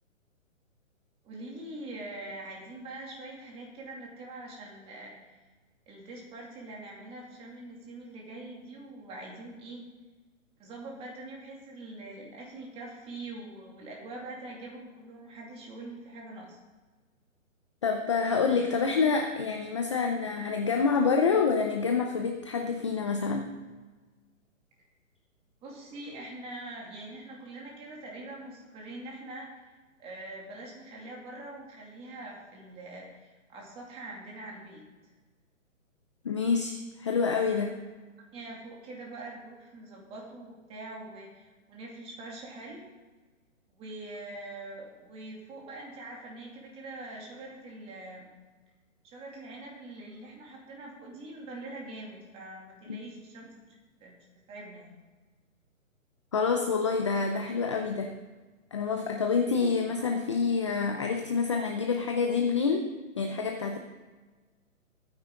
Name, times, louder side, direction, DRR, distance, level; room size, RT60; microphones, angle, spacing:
voice 1, 1.2-5.4 5.9-9.9 10.6-16.6 25.6-34.8 37.5-37.7 38.3-42.9 43.7-48.3 49.0-53.8 54.0-54.1 54.5-55.0, right 2 dB, 15° right, -2 dB, 2.5 m, -44 dB
voice 2, 17.8-23.5 36.2-37.7 52.9-53.0 56.3-58.1 58.7-62.9 63.2-63.8, left 5 dB, 20° left, 4 dB, 0.5 m, -27 dB
21.5 x 9.7 x 3.8 m, 1.3 s
hypercardioid pair, 160°, 41 cm